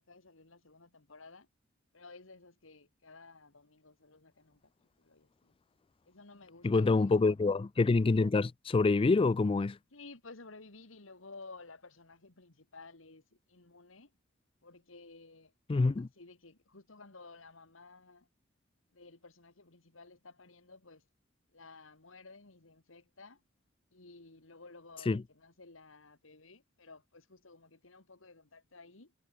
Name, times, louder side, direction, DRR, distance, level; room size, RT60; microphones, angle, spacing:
voice 1, 0.1-1.5 1.9-5.5 6.1-7.4 9.9-14.1 14.6-15.5 16.0-18.3 18.9-21.1 21.5-23.4 23.9-29.1, left 3 dB, 85° left, 2.4 m, -54 dB
voice 2, 6.6-9.8 15.7-16.1 25.1-25.2, left 3 dB, 25° left, 0.4 m, -26 dB
head